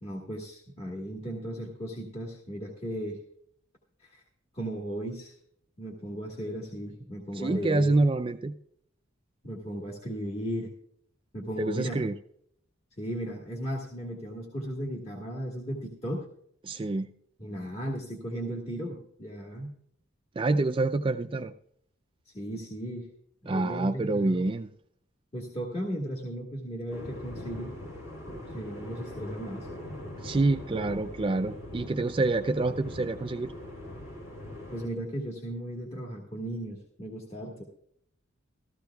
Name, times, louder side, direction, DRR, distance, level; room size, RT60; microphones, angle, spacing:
voice 1, 0.0-3.2 4.0-4.2 4.5-5.4 5.8-8.0 9.4-10.7 11.3-12.0 13.0-16.3 17.4-19.7 22.2-23.1 23.4-24.4 25.3-27.7 28.3-29.7 34.7-37.6, equal, 30° left, -2 dB, 1.6 m, -36 dB
voice 2, 7.3-8.5 11.6-12.1 16.6-17.1 20.4-21.5 23.5-24.7 30.2-33.5, right 2 dB, 25° right, 7 dB, 0.4 m, -27 dB
sound 1, 26.9-34.9, left 1 dB, 70° left, 4.1 m, -41 dB
15.0 x 14.0 x 2.3 m, 0.67 s
head